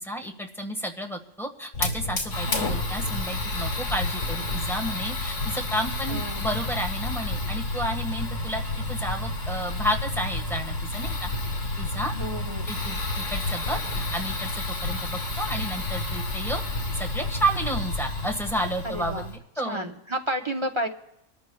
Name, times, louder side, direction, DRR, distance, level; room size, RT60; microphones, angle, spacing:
voice 1, 0.0-8.6 8.9-11.3 11.8-12.1 12.7-16.6 17.0-19.2 19.6-19.9, right 1 dB, ahead, 1 dB, 1.3 m, -31 dB
Fire, 1.7-19.4, left 2 dB, 75° left, 2.5 m, -30 dB
voice 2, 2.4-2.8 6.1-6.4 12.1-12.7 18.8-19.3 19.6-20.9, equal, 25° right, 4 dB, 0.8 m, -31 dB
26.0 x 13.5 x 2.3 m, 0.88 s
omnidirectional pair, 1.3 m